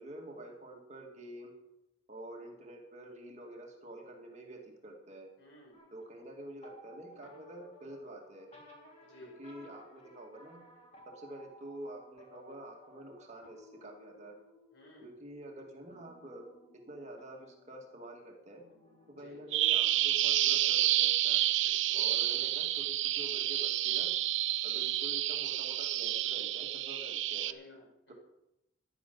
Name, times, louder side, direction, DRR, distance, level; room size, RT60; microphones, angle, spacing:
voice 1, 0.0-1.5 2.1-5.3 5.9-8.5 9.2-10.6 11.1-14.4 15.0-16.5 16.7-18.6 19.1-21.4 21.9-24.2 24.6-27.5 28.1-28.2, right 1 dB, 35° right, 1 dB, 2.1 m, -48 dB
voice 2, 5.4-5.8 9.0-9.3 14.7-15.1 19.2-19.4 21.6-22.5 27.3-28.1, left 1 dB, 60° left, -2 dB, 6.2 m, -55 dB
Rotary for rotate, 5.7-19.9, left 1 dB, 35° left, 3.6 m, -58 dB
Bird vocalization bird call bird song, 19.5-27.5, right 14 dB, 70° right, 0.6 m, -29 dB
15.5 x 11.5 x 5.4 m, 0.86 s
head